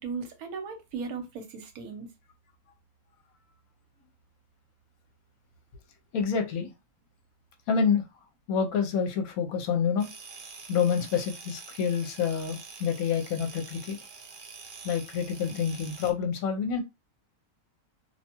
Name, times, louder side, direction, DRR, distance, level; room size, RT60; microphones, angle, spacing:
voice 1, 0.0-2.1, right 5 dB, 75° right, 1.1 m, -37 dB
voice 2, 6.1-6.7 7.7-8.0 8.5-10.1 10.7-14.0 14.8-16.8, left 6 dB, 75° left, 1.0 m, -27 dB
sound 1, 10.0-16.1, right 5 dB, 90° right, 0.4 m, -46 dB
2.6 x 2.2 x 2.8 m
omnidirectional pair, 1.6 m